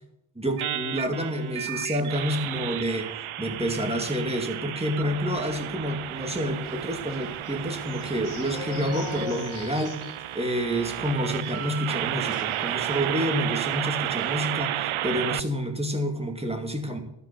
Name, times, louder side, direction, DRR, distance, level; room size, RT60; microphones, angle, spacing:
voice 1, 0.4-3.1 3.4-10.0 10.3-17.0, equal, 10° right, 4 dB, 2.3 m, -28 dB
sound 1, 0.6-15.4, right 13 dB, 80° right, 0.6 m, -32 dB
sound 2, 6.6-13.3 13.6-13.8 14.1-14.3, left 6 dB, 75° left, 1.5 m, -42 dB
12.5 x 5.5 x 8.0 m, 0.81 s
cardioid pair, 55°, 49 cm